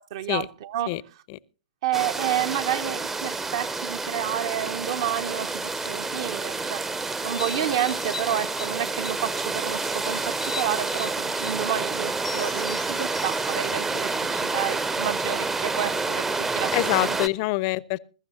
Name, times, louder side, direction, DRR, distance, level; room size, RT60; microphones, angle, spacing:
voice 1, 0.1-1.0 1.8-6.8 7.2-17.2, right 11 dB, 45° right, 0.7 m, -30 dB
sound 1, 1.9-17.3, right 3 dB, 10° right, 0.6 m, -29 dB
sound 2, 7.2-9.3 9.7-11.6 12.2-14.7, left 4 dB, 85° left, 0.8 m, -40 dB
voice 2, 16.7-18.0, left 20 dB, 35° left, 0.6 m, -25 dB
21.5 x 13.5 x 2.8 m
figure-of-eight pair, 115°, 4 cm